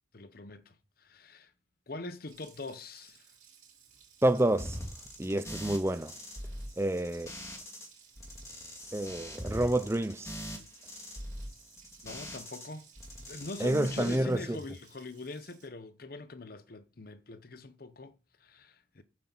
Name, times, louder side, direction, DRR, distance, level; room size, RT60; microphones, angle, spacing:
voice 1, 0.1-1.5 1.9-3.3 12.0-12.9 13.2-19.0, left 2 dB, 50° left, 0.8 m, -43 dB
Water tap faucet, 2.2-15.7, right 7 dB, 40° right, 4.5 m, -60 dB
voice 2, 4.2-4.8 5.2-6.1 6.8-7.3 8.9-10.3 13.6-14.6, right 1 dB, 15° right, 0.5 m, -28 dB
sound 1, 4.6-7.9 8.2-12.7 13.0-14.2, equal, 15° left, 2.3 m, -42 dB
9.5 x 7.7 x 4.4 m
head